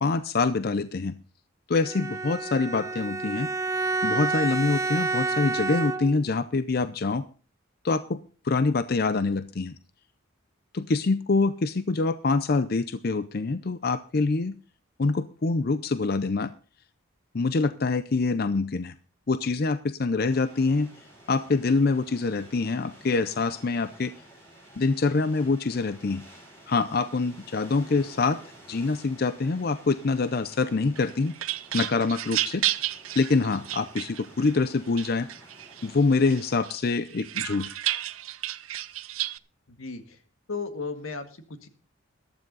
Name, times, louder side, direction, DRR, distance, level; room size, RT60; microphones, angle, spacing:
voice 1, 0.0-1.2 1.7-3.5 4.0-7.3 7.8-9.8 10.7-14.6 15.0-16.5 17.3-18.9 19.3-20.9 21.3-24.1 24.8-26.2 26.7-28.4 28.7-31.3 31.7-32.6 33.2-35.3 35.8-37.7, left 3 dB, 50° left, 13 dB, 0.5 m, -25 dB
Bowed string instrument, 1.8-6.3, right 3 dB, 15° right, 0.6 m, -29 dB
sound 1, 20.3-36.5, right 1 dB, 15° left, 5.9 m, -51 dB
sound 2, 31.0-34.5 35.0-35.9 36.3-39.4, right 14 dB, 85° right, 0.6 m, -32 dB
voice 2, 39.7-40.2 40.5-41.7, left 4 dB, 85° left, 8 dB, 1.8 m, -35 dB
14.0 x 12.5 x 4.0 m, 0.37 s
head